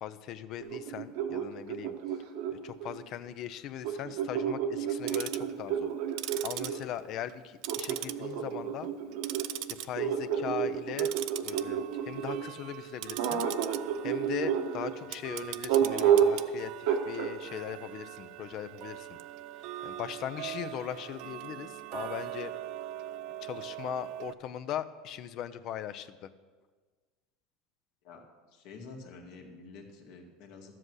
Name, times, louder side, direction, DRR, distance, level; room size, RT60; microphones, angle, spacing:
voice 1, 0.0-2.2 2.5-5.9 6.4-8.9 9.7-11.1 11.4-13.4 14.0-19.2 19.8-22.5 23.4-26.3, left 10 dB, 50° left, 12 dB, 0.6 m, -39 dB
sound 1, 0.6-3.0 3.8-6.8 7.7-12.4 13.2-14.9 15.7-16.4 16.9-17.3, right 8 dB, 80° right, 1.2 m, -30 dB
Tick-tock, 4.9-5.5 6.1-7.4 7.6-8.5 8.8-9.9 10.2-10.5 10.9-24.3, right 14 dB, 65° right, 0.4 m, -41 dB
voice 2, 28.5-30.8, left 4 dB, 65° left, 1 dB, 2.0 m, -48 dB
12.5 x 7.7 x 6.3 m, 1.4 s
supercardioid pair, 125°, 0 cm